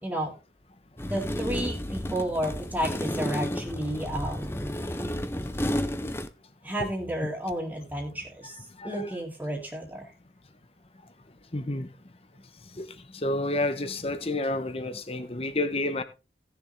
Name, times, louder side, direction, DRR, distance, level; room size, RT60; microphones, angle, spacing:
voice 1, 0.0-0.3 1.0-4.7 6.6-10.1, right 1 dB, 10° right, 2.1 m, -32 dB
sound 1, 1.0-6.3, left 1 dB, 15° left, 0.7 m, -32 dB
voice 2, 11.5-11.9 12.8-12.9 13.2-16.0, left 2 dB, 35° left, 1.1 m, -29 dB
17.5 x 6.9 x 3.3 m
head